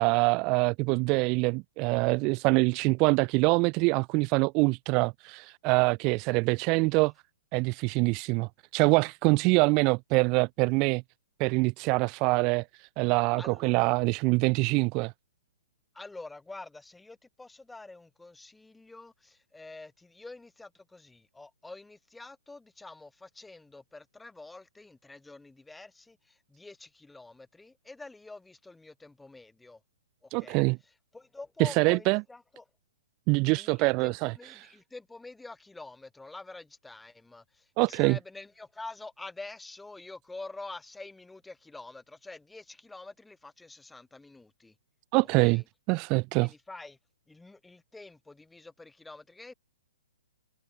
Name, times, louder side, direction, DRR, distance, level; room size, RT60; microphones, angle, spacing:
voice 1, 0.0-7.1 7.5-11.0 11.4-15.1 30.3-30.8 31.6-32.2 33.3-34.7 37.8-38.2 45.1-45.6 45.9-46.5, right 28 dB, 25° right, 1.1 m, -25 dB
voice 2, 13.4-13.8 15.9-29.8 30.2-32.6 33.5-44.7 45.4-45.6 46.4-47.0 47.3-49.5, left 3 dB, 5° left, 5.7 m, -47 dB
hypercardioid pair, 165°, 0 cm